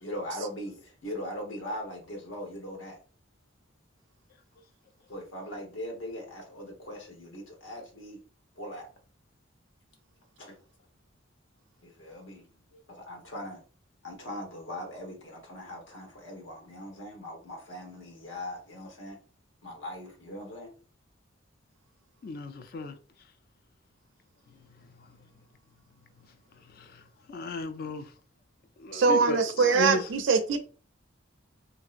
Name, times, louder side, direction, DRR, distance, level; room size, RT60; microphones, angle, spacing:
voice 1, 0.0-3.0 5.1-8.2 8.6-8.9 10.4-10.5 11.8-12.4 12.9-13.6 14.0-19.2 19.6-20.7, left 1 dB, 70° left, 1.0 m, -40 dB
voice 2, 22.2-23.0 25.0-25.2 26.7-28.1 28.8-30.1, left 2 dB, 50° left, 0.3 m, -35 dB
voice 3, 28.9-30.6, right 5 dB, 70° right, 0.4 m, -23 dB
3.0 x 2.7 x 2.4 m
head